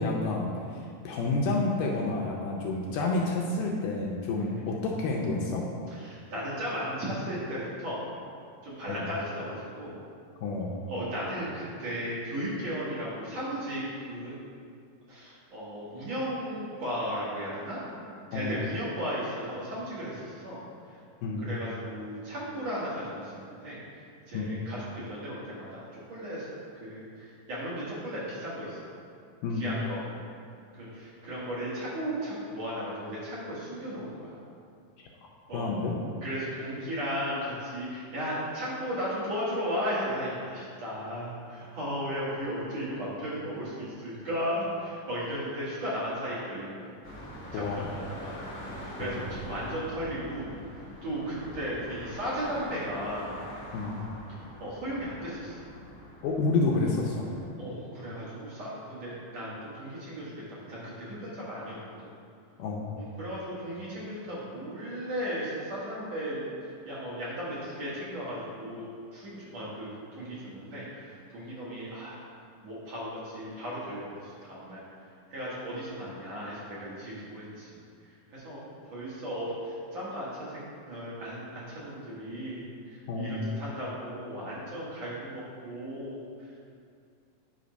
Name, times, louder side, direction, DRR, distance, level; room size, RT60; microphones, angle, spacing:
voice 1, 0.0-5.7 8.9-9.1 10.4-10.7 18.3-18.6 21.2-21.5 24.3-24.5 29.4-29.7 35.5-35.9 47.5-47.9 49.0-49.2 53.7-54.0 56.2-57.3 62.6-62.9 83.1-83.4, left 3 dB, 75° left, -2 dB, 2.1 m, -29 dB
voice 2, 5.9-8.0 8.6-9.9 10.9-14.3 15.1-18.0 18.3-20.6 21.4-23.8 24.3-26.5 26.8-28.9 29.6-30.0 30.7-34.3 35.5-35.6 36.2-46.9 47.5-48.4 48.7-50.5 51.0-53.3 54.6-55.6 57.6-61.8 63.0-68.8 69.1-72.2 72.6-74.8 75.3-77.8 78.3-86.2, equal, 55° right, -8 dB, 2.5 m, -35 dB
sound 1, 47.0-57.5, equal, 45° left, 1.1 m, -44 dB
9.7 x 3.5 x 5.1 m, 2.3 s
omnidirectional pair, 4.1 m